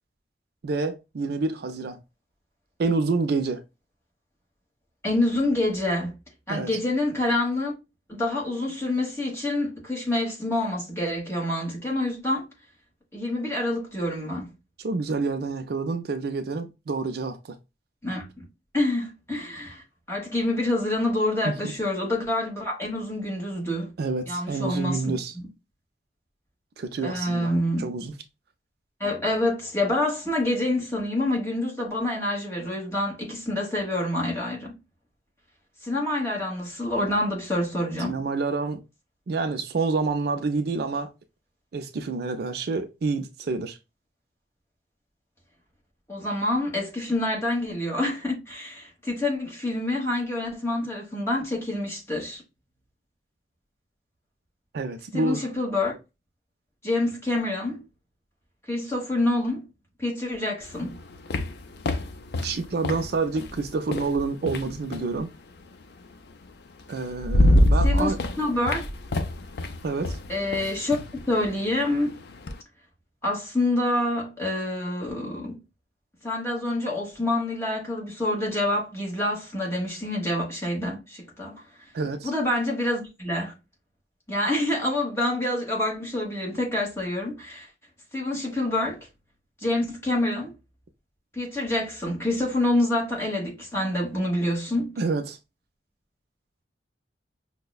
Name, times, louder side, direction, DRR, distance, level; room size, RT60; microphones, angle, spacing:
voice 1, 0.6-2.0 2.8-3.6 6.5-6.7 14.8-17.4 21.4-21.7 24.0-25.3 26.8-27.5 27.8-28.1 38.0-38.8 39.3-41.1 41.7-43.8 54.7-55.4 62.4-65.3 66.9-68.2 69.8-70.2 81.9-82.3 95.0-95.4, right 3 dB, 60° right, 0.4 m, -28 dB
voice 2, 5.0-6.1 6.5-7.7 8.1-12.4 13.1-14.5 18.0-18.4 18.7-23.9 24.3-25.4 27.0-27.9 29.0-34.7 35.8-38.2 46.1-52.4 55.1-55.9 56.8-57.8 58.7-59.6 60.0-61.0 67.8-68.9 70.3-71.0 71.3-72.1 73.2-75.6 76.2-81.6 82.2-83.5 84.3-87.7 88.1-89.0 89.6-90.5 91.3-94.9, left 1 dB, 15° left, 1.2 m, -27 dB
sound 1, 60.6-65.2 66.4-66.5 66.9-72.6, left 1 dB, 60° left, 0.4 m, -26 dB
5.5 x 2.1 x 2.2 m
head